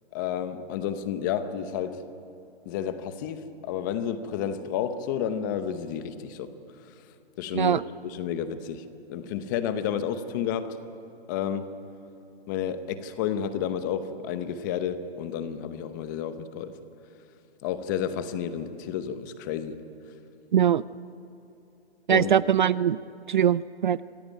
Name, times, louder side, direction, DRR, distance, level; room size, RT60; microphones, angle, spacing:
voice 1, 0.1-2.0 2.7-6.5 7.4-10.8 11.3-11.7 12.5-16.7 17.6-19.8 22.1-22.3, left 8 dB, 20° left, 11 dB, 0.8 m, -31 dB
voice 2, 20.5-20.8 22.1-23.0 23.3-24.0, right 9 dB, 50° right, 19 dB, 0.4 m, -21 dB
26.0 x 16.0 x 9.1 m, 2.7 s
hypercardioid pair, 160°, 32 cm